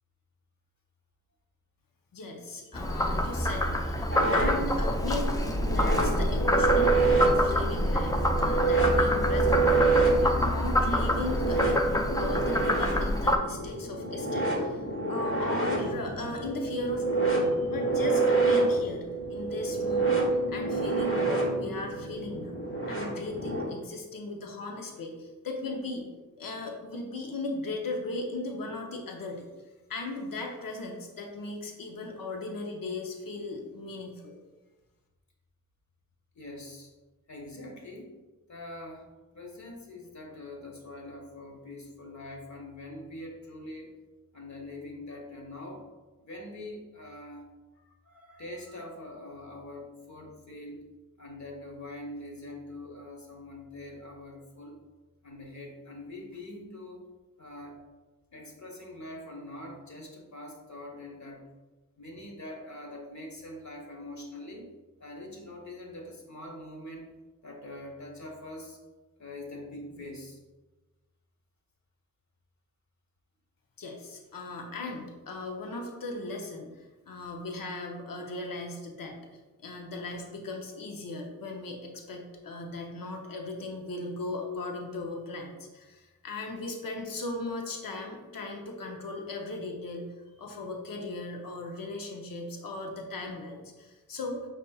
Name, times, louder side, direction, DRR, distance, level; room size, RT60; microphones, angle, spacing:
voice 1, 2.1-5.4 5.7-14.8 15.1-19.0 19.3-20.2 20.5-22.5 22.9-26.1 26.4-29.5 29.9-34.3 73.8-79.2 79.6-90.1 90.4-94.5, left 2 dB, 90° left, 2 dB, 0.7 m, -37 dB
Frog, 2.7-13.4, left 1 dB, 10° left, 0.3 m, -26 dB
sound 1, 4.1-23.7, right 3 dB, 40° left, 1.1 m, -28 dB
voice 2, 36.3-36.9 37.3-38.1 38.5-44.0 44.3-45.9 46.2-47.5 47.8-50.9 51.2-54.8 55.2-57.1 57.4-57.8 58.3-61.5 62.0-64.7 65.0-67.1 67.4-68.8 69.2-70.4, left 1 dB, 55° left, 0 dB, 1.1 m, -43 dB
5.2 x 4.0 x 2.3 m, 1.2 s
wide cardioid pair, 65°, 33 cm